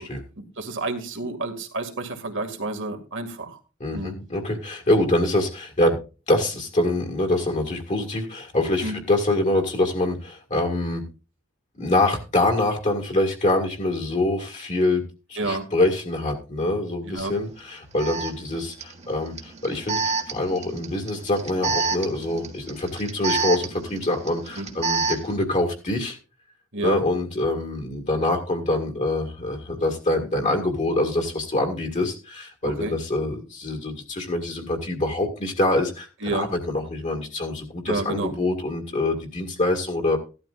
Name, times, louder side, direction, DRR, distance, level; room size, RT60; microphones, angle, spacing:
voice 1, 0.4-3.6 3.9-4.2 8.8-9.0 15.4-15.7 17.0-17.3 24.6-24.7 26.7-27.0 32.6-32.9 36.2-36.5 37.9-38.3, right 2 dB, 60° right, 5 dB, 2.1 m, -29 dB
voice 2, 3.8-6.0 6.3-11.0 11.8-15.0 15.3-26.2 26.8-40.2, left 2 dB, 35° left, 2 dB, 2.0 m, -25 dB
Alarm, 17.2-17.3 18.0-25.4, right 4 dB, 30° right, 1.6 m, -29 dB
15.5 x 12.5 x 2.5 m, 0.33 s
head